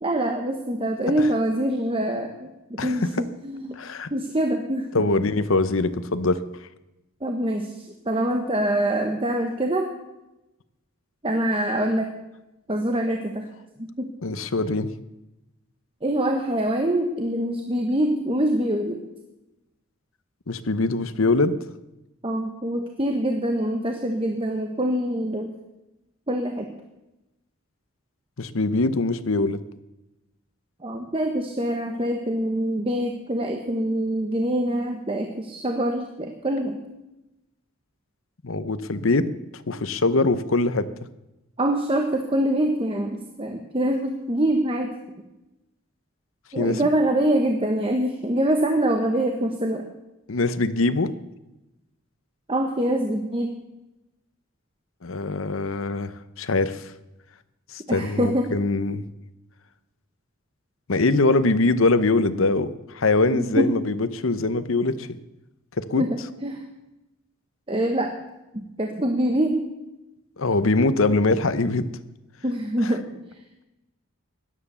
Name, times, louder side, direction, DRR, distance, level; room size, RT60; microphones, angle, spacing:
voice 1, 0.0-3.8 4.1-4.9 7.2-7.7 8.1-9.9 11.2-12.1 12.7-13.5 13.8-14.1 16.0-19.0 22.2-25.5 26.3-26.7 30.8-36.8 41.6-44.9 46.5-49.9 52.5-53.6 57.9-58.6 63.3-63.7 66.0-66.6 67.7-68.1 68.5-69.6 72.4-73.0, right 1 dB, 25° right, 4 dB, 1.1 m, -24 dB
voice 2, 2.8-3.2 3.8-4.1 4.9-6.4 14.2-14.9 20.5-21.5 28.4-29.6 38.4-39.3 39.7-40.9 46.6-46.8 50.3-51.1 55.0-56.1 56.4-56.8 57.7-59.0 60.9-65.1 65.8-66.1 70.4-71.9 72.8-72.9, left 3 dB, 70° left, 13 dB, 0.9 m, -23 dB
17.0 x 11.5 x 6.9 m, 0.97 s
head